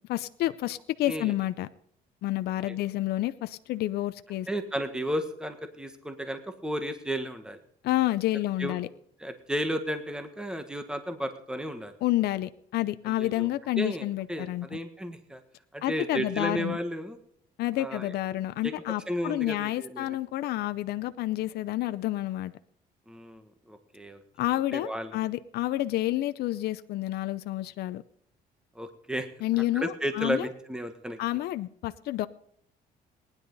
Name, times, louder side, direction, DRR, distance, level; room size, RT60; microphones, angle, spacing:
voice 1, 0.1-1.7 2.2-4.5 7.8-8.9 12.0-14.8 15.8-16.8 17.6-22.5 24.4-28.0 29.4-30.5 31.2-32.3, left 15 dB, 70° left, 12 dB, 0.6 m, -29 dB
voice 2, 4.5-7.6 8.6-8.8 9.2-11.9 13.1-13.5 13.8-15.4 15.7-17.2 17.8-18.1 19.1-20.2 23.1-24.2 24.7-25.1 28.7-29.3 29.7-31.2, equal, 5° right, 8 dB, 1.6 m, -33 dB
19.0 x 10.5 x 4.1 m, 0.67 s
cardioid pair, 110°, 17 cm